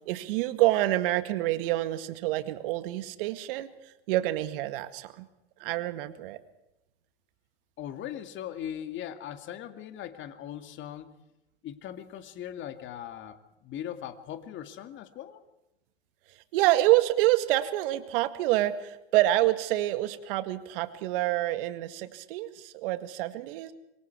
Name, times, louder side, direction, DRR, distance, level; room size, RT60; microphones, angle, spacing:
voice 1, 0.1-3.7 4.1-5.3 5.6-6.4 16.5-23.7, right 16 dB, 60° right, 10 dB, 2.1 m, -27 dB
voice 2, 7.8-11.1 11.6-15.4, left 10 dB, 40° left, 8 dB, 2.2 m, -39 dB
26.5 x 22.5 x 4.7 m, 0.92 s
hypercardioid pair, 105°, 31 cm